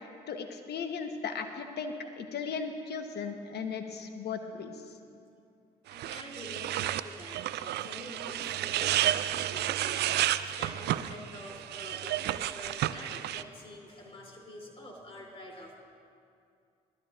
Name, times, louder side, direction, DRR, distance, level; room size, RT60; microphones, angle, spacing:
voice 1, 0.3-4.7, left 5 dB, 60° left, 6 dB, 1.1 m, -36 dB
voice 2, 5.9-6.7 7.0-15.8, left 1 dB, 30° left, -1 dB, 3.2 m, -47 dB
sound 1, 5.9-13.4, right 12 dB, 65° right, 0.4 m, -31 dB
18.0 x 12.5 x 2.5 m, 2.4 s
hypercardioid pair, 50°, 19 cm